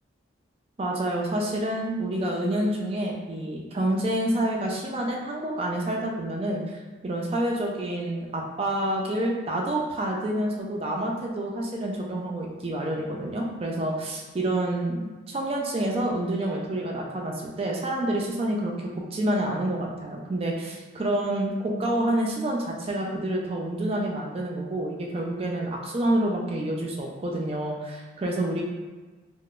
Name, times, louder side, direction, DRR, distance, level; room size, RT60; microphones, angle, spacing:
voice 1, 0.8-28.6, right 1 dB, 30° right, -1 dB, 0.4 m, -28 dB
3.5 x 2.1 x 2.4 m, 1.3 s
head